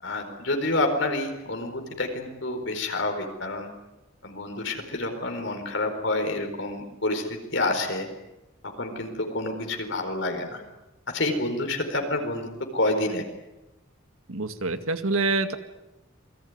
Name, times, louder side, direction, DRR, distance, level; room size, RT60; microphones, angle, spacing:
voice 1, 0.0-3.7 4.2-8.1 8.8-10.6 11.1-13.2, left 2 dB, 60° left, 4 dB, 4.5 m, -28 dB
voice 2, 14.3-15.6, right 3 dB, 90° right, 8 dB, 2.1 m, -26 dB
28.0 x 21.5 x 9.6 m, 1.0 s
head